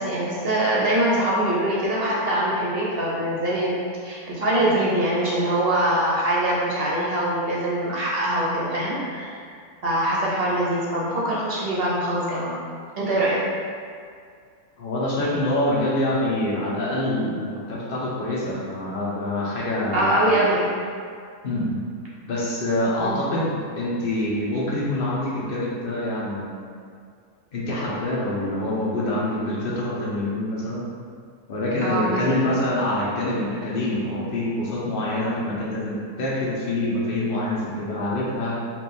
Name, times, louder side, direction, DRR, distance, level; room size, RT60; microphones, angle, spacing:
voice 1, 0.0-9.4 9.8-12.6 13.0-13.4 19.9-20.7 23.0-23.2 31.8-32.4, right 1 dB, 50° right, -6 dB, 0.8 m, -23 dB
voice 2, 14.8-20.5 21.4-21.8 22.3-26.6 27.5-30.8 31.5-38.6, left 1 dB, 45° left, -5 dB, 0.9 m, -26 dB
4.5 x 2.6 x 3.4 m, 2.2 s
omnidirectional pair, 1.5 m